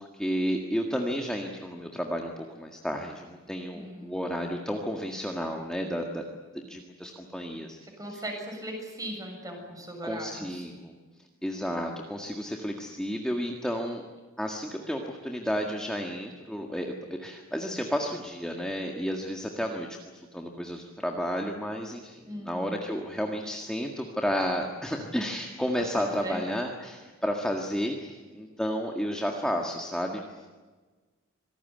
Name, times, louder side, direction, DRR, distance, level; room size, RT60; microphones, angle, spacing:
voice 1, 0.0-6.3 6.5-7.8 8.1-8.2 10.0-11.0 11.4-14.0 14.4-30.5, equal, 5° left, 1 dB, 1.8 m, -32 dB
voice 2, 3.7-4.4 8.0-10.7 22.2-22.8 25.8-26.5, right 1 dB, 15° right, 2 dB, 7.4 m, -38 dB
26.5 x 18.5 x 9.4 m, 1.3 s
head